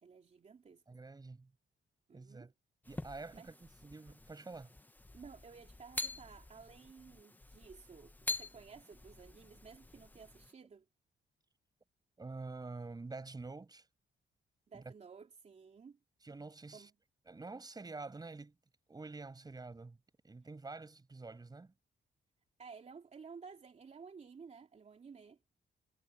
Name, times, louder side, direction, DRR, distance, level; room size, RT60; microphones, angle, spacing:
voice 1, 0.0-0.8 2.1-2.5 3.3-3.5 5.1-10.8 14.7-16.0 16.7-16.9 22.6-25.4, right 5 dB, 35° right, 3.1 m, -54 dB
voice 2, 0.9-1.5 2.1-2.5 2.9-4.7 12.2-13.9 14.7-14.9 16.2-16.9 17.3-18.6 18.9-20.0 20.2-21.7, right 3 dB, 20° right, 5.7 m, -47 dB
sound 1, 2.8-10.5, left 3 dB, 10° left, 0.7 m, -46 dB
wide cardioid pair, 160°, 19 cm